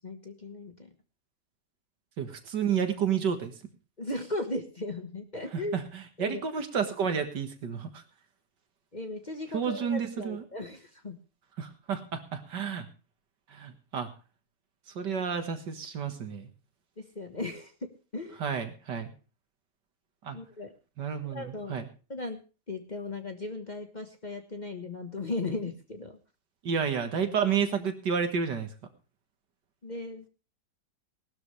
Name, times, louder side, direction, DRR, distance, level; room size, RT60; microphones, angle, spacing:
voice 1, 0.0-0.9 4.0-5.8 6.2-6.4 8.9-11.2 17.0-18.4 20.3-20.7 21.2-21.8 22.1-22.4 22.7-26.2 29.8-30.3, left 2 dB, 25° left, 6 dB, 1.3 m, -37 dB
voice 2, 2.2-3.5 5.5-8.0 9.5-10.4 11.6-12.9 13.5-14.1 15.0-16.5 18.4-19.1 20.2-20.4 21.0-21.9 26.6-28.7, right 7 dB, 70° right, 8 dB, 2.2 m, -31 dB
19.0 x 12.5 x 3.3 m, 0.33 s
omnidirectional pair, 1.9 m